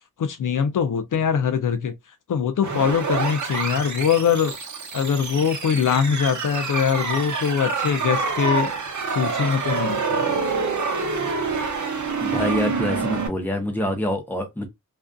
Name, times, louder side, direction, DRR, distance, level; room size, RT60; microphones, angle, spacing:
voice 1, 0.2-1.9 2.3-4.5 4.9-8.7 9.1-10.4, left 7 dB, 65° left, 0.5 m, -22 dB
sound 1, 2.6-13.3, right 4 dB, 55° right, 0.7 m, -26 dB
voice 2, 12.2-14.7, left 1 dB, 5° left, 0.7 m, -26 dB
2.4 x 2.4 x 2.2 m
wide cardioid pair, 125°, 34 cm